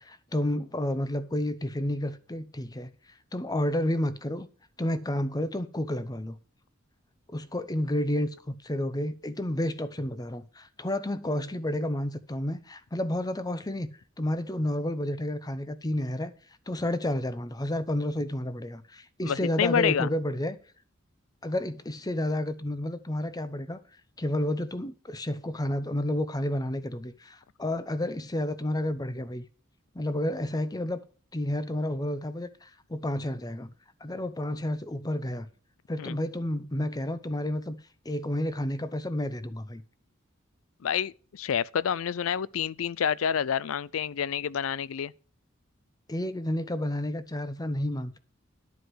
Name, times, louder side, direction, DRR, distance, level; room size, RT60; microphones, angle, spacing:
voice 1, 0.0-4.5 4.8-6.4 7.3-16.3 16.7-20.6 21.4-23.8 24.2-29.4 29.9-31.0 31.3-33.7 34.0-35.5 35.9-37.8 38.0-39.8 46.1-48.2, left 1 dB, 20° left, 0.8 m, -31 dB
voice 2, 19.2-20.1 36.0-36.2 40.8-45.1, left 8 dB, 85° left, 0.4 m, -28 dB
11.5 x 4.8 x 7.8 m
head